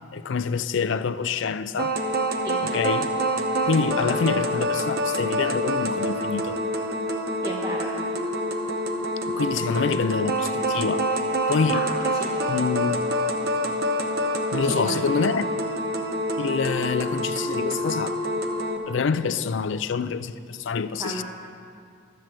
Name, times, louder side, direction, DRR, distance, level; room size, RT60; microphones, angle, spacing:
voice 1, 0.1-2.0 2.6-3.1 3.7-6.6 9.3-11.1 11.5-11.8 12.5-13.1 14.5-15.5 16.4-18.2 18.9-21.2, left 5 dB, 60° left, 0.4 m, -26 dB
sound 1, 1.8-18.8, equal, 50° right, 0.8 m, -26 dB
voice 2, 7.4-7.9 11.7-12.3 14.6-15.0 21.0-21.2, right 1 dB, 20° right, 0.8 m, -33 dB
11.5 x 7.5 x 7.7 m
head